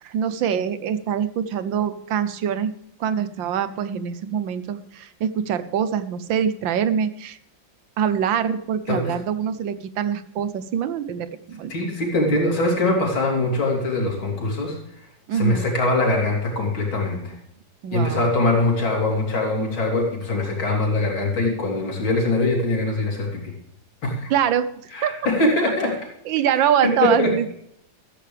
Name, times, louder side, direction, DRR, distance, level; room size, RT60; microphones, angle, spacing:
voice 1, 0.0-2.7 3.0-7.4 8.0-11.7 15.3-15.7 17.8-18.4 24.3-24.7 25.0-25.2 26.3-27.5, right 8 dB, 75° right, 13 dB, 1.5 m, -24 dB
voice 2, 11.7-14.8 15.3-17.3 17.9-23.4 24.0-24.3 24.9-25.9 26.8-27.3, left 2 dB, 85° left, 0 dB, 4.0 m, -22 dB
15.0 x 13.5 x 3.4 m, 0.74 s
omnidirectional pair, 2.1 m